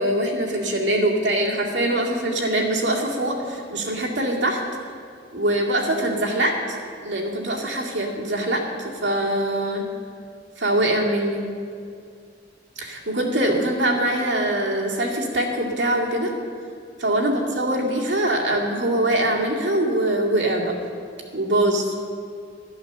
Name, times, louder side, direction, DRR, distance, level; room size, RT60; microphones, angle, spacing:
voice 1, 0.0-4.6 5.3-6.8 7.0-9.8 10.6-11.4 12.8-16.3 17.0-20.7 21.3-21.9, right 1 dB, 75° right, -1 dB, 2.3 m, -23 dB
11.5 x 10.0 x 6.8 m, 2.4 s
head